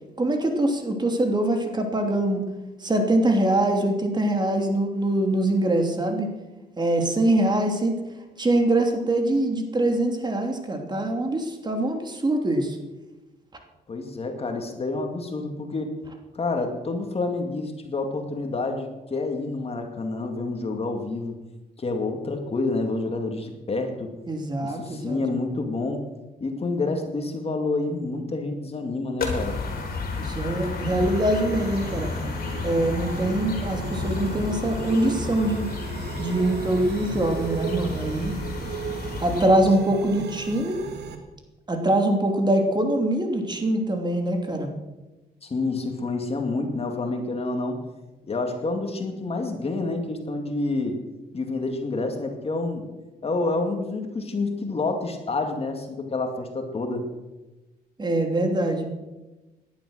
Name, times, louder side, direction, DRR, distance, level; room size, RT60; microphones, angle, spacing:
voice 1, 0.2-2.4 2.8-6.3 6.8-8.0 8.4-12.8 24.3-25.2 30.2-32.1 32.6-35.7 36.2-38.3 39.2-40.8 41.7-44.7 58.0-58.9, right 1 dB, 25° right, 4 dB, 2.9 m, -23 dB
voice 2, 13.9-15.9 16.3-21.4 21.8-24.1 24.6-26.1 26.4-29.6 45.4-47.8 48.3-51.0 51.3-52.8 53.2-57.0, left 3 dB, 35° left, 5 dB, 2.3 m, -28 dB
sound 1, 29.2-39.5, left 3 dB, 60° left, 4.1 m, -32 dB
sound 2, 30.9-41.2, right 6 dB, 85° right, 2.1 m, -36 dB
18.0 x 11.5 x 6.4 m, 1.1 s
cardioid pair, 105°, 17 cm